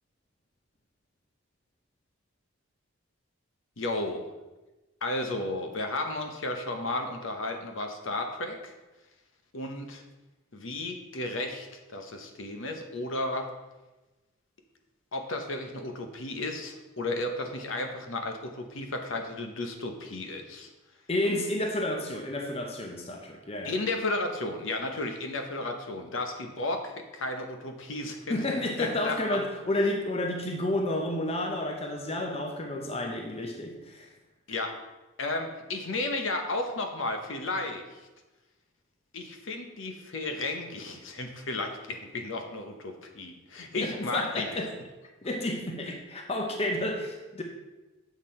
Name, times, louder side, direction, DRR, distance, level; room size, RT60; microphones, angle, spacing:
voice 1, 3.8-4.2 5.0-8.7 9.5-10.0 10.5-13.5 15.1-20.7 23.6-28.4 28.8-29.4 34.5-34.8 35.2-38.0 39.1-44.6, left 2 dB, 65° left, 5 dB, 0.9 m, -33 dB
voice 2, 21.1-23.7 28.3-34.1 43.7-44.7 45.2-47.4, left 1 dB, 30° left, 2 dB, 0.7 m, -31 dB
7.4 x 6.0 x 4.3 m, 1.1 s
head